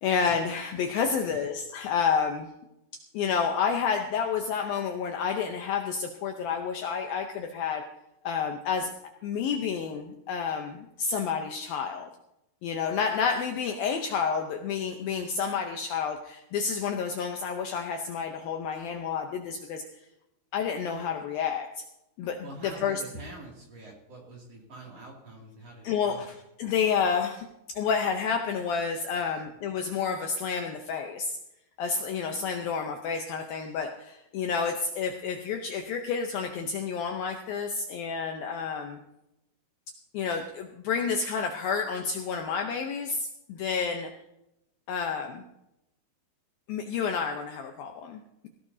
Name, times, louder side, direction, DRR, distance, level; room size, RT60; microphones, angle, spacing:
voice 1, 0.0-2.5 3.1-7.8 8.2-8.9 9.2-12.1 12.6-19.8 20.5-21.8 22.2-23.0 25.8-26.3 26.6-31.4 31.8-39.0 40.1-44.1 44.9-45.4 46.7-48.5, left 6 dB, 75° left, 4 dB, 2.2 m, -30 dB
voice 2, 1.2-1.5 22.4-26.3 29.1-29.4, right 2 dB, 40° right, -2 dB, 3.1 m, -45 dB
17.5 x 17.0 x 2.7 m, 0.86 s
omnidirectional pair, 5.1 m